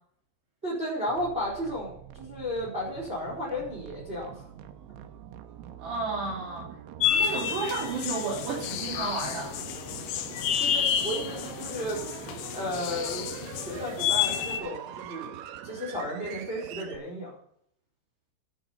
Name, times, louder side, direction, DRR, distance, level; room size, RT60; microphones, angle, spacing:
voice 1, 0.6-4.4 10.6-12.0 12.5-15.4 15.6-17.4, equal, 10° right, -3 dB, 4.3 m, -34 dB
sound 1, 1.1-17.0, right 10 dB, 85° right, 3.5 m, -44 dB
voice 2, 5.8-6.7 7.1-9.5, right 4 dB, 60° right, -4 dB, 5.1 m, -32 dB
sound 2, 7.0-14.6, left 9 dB, 80° left, 2.4 m, -30 dB
11.0 x 10.5 x 5.6 m, 0.66 s
omnidirectional pair, 5.8 m